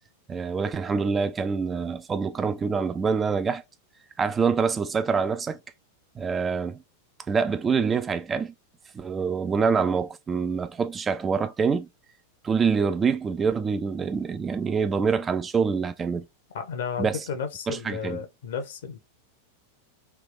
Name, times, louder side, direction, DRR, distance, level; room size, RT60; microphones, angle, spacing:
voice 1, 0.3-3.6 4.2-5.6 6.2-6.8 7.3-8.5 8.9-11.9 12.4-16.3 17.0-17.3 17.7-18.2, right 5 dB, 20° right, 0.4 m, -25 dB
voice 2, 16.5-19.0, left 6 dB, 60° left, 0.9 m, -33 dB
3.4 x 2.7 x 3.8 m
figure-of-eight pair, 90°, 0 cm